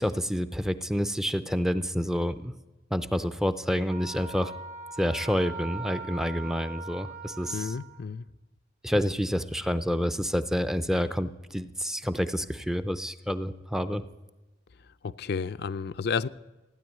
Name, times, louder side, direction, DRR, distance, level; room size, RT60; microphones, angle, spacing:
voice 1, 0.0-2.6 2.9-4.5 5.0-7.7 8.8-14.0, equal, 5° right, 0.5 m, -28 dB
Wind instrument woodwind instrument, 3.9-8.0, right 4 dB, 40° right, 1.4 m, -41 dB
voice 2, 7.5-8.2 15.0-16.3, left 5 dB, 60° left, 0.4 m, -31 dB
15.5 x 9.8 x 9.1 m
head